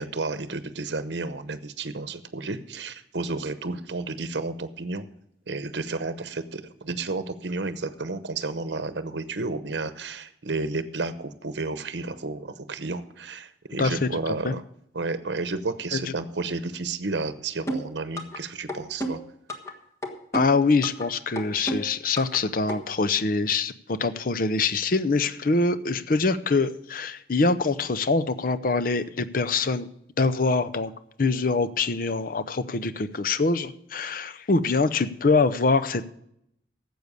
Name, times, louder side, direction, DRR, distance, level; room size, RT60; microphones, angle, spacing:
voice 1, 0.0-5.1 5.5-14.6 14.9-19.2, right 3 dB, 75° right, 12 dB, 0.8 m, -32 dB
voice 2, 13.8-14.1 14.4-14.5 20.3-29.9 30.2-30.9 31.2-36.1, left 3 dB, 50° left, 12 dB, 0.6 m, -24 dB
sound 1, 17.7-18.4 18.7-19.7 20.0-21.1 21.4-22.4 22.7-22.8, right 1 dB, 15° left, 1.4 m, -31 dB
12.0 x 7.9 x 6.7 m, 0.75 s
head